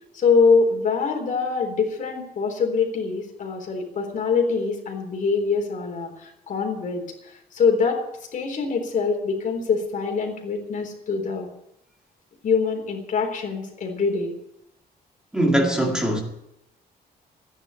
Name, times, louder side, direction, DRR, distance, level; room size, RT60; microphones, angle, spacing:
voice 1, 0.1-8.0 8.3-11.5 12.4-14.3, left 5 dB, 50° left, 3.8 m, -24 dB
voice 2, 15.3-16.2, right 1 dB, 5° right, 2.1 m, -21 dB
14.5 x 10.0 x 8.3 m
cardioid pair, 150°, 17 cm